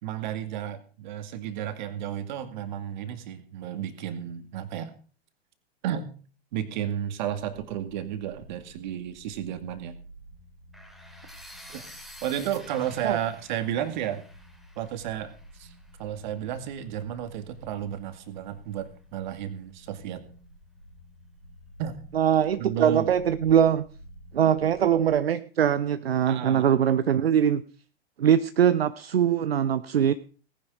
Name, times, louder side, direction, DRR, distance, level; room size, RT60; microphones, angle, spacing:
voice 1, 0.0-4.9 5.8-6.1 6.5-10.0 11.7-11.9 12.2-14.2 14.8-15.7 16.0-20.2 21.8-22.0 22.6-23.1 26.3-26.7, right 10 dB, 45° right, 10 dB, 2.2 m, -32 dB
sound 1, 7.5-25.1, equal, 90° left, 4.4 m, -51 dB
sound 2, 10.7-16.7, equal, ahead, 2.6 m, -50 dB
voice 2, 22.1-23.8 24.3-27.6 28.2-30.1, right 9 dB, 65° right, 14 dB, 0.8 m, -22 dB
18.5 x 10.0 x 5.0 m, 0.39 s
figure-of-eight pair, 105°, 32 cm